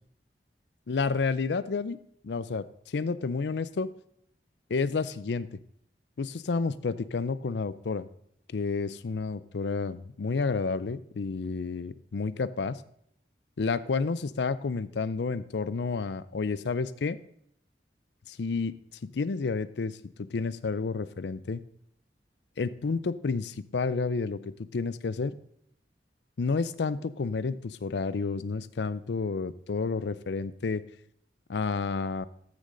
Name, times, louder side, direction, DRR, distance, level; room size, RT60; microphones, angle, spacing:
voice 1, 0.9-2.0 2.2-3.9 4.7-5.6 6.2-8.1 8.5-12.8 13.6-17.2 18.3-18.7 19.1-21.6 22.6-25.4 26.4-30.8 31.5-32.3, left 4 dB, 80° left, 17 dB, 0.5 m, -30 dB
13.5 x 6.4 x 3.9 m, 0.71 s
head